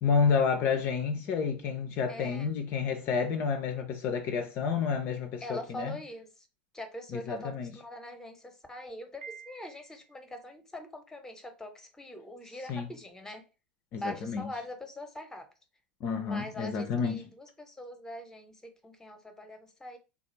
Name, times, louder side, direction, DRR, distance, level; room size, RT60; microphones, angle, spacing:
voice 1, 0.0-5.9 7.1-7.7 12.7-12.9 13.9-14.5 16.0-17.3, left 6 dB, 40° left, 0.4 m, -30 dB
voice 2, 2.1-2.5 5.4-6.5 6.7-13.4 14.0-15.5 16.2-20.0, left 1 dB, 10° left, 0.8 m, -43 dB
Piano, 9.2-10.2, right 6 dB, 70° right, 0.7 m, -48 dB
3.6 x 2.3 x 3.1 m
figure-of-eight pair, 80°, 6 cm